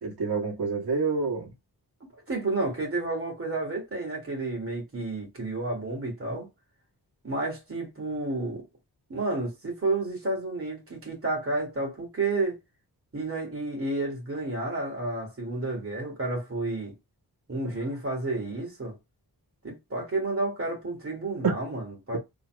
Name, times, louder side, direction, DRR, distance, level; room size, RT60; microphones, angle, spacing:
voice 1, 0.0-1.5 17.6-17.7 21.4-21.5, right 4 dB, 75° right, 1.8 m, -27 dB
voice 2, 2.3-6.5 7.2-8.6 9.1-12.6 13.1-16.9 17.5-19.0 19.6-22.2, right 2 dB, 35° right, 2.3 m, -31 dB
4.1 x 3.6 x 2.3 m
wide cardioid pair, 135°, 38 cm